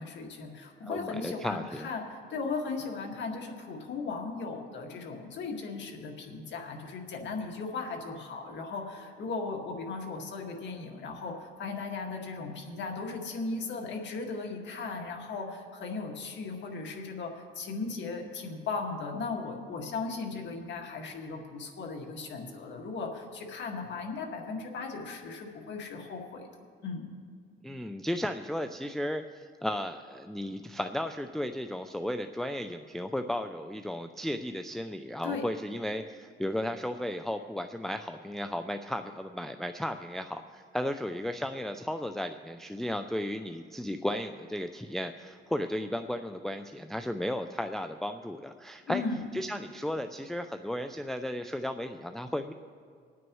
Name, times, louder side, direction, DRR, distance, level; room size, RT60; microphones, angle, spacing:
voice 1, 0.0-26.5 26.8-27.1 35.2-35.5 48.9-49.3, left 4 dB, 65° left, 1 dB, 1.9 m, -37 dB
voice 2, 0.8-1.9 27.6-49.0 49.3-52.5, left 1 dB, ahead, 7 dB, 0.4 m, -34 dB
25.0 x 9.3 x 3.1 m, 2.1 s
cardioid pair, 90°, 20 cm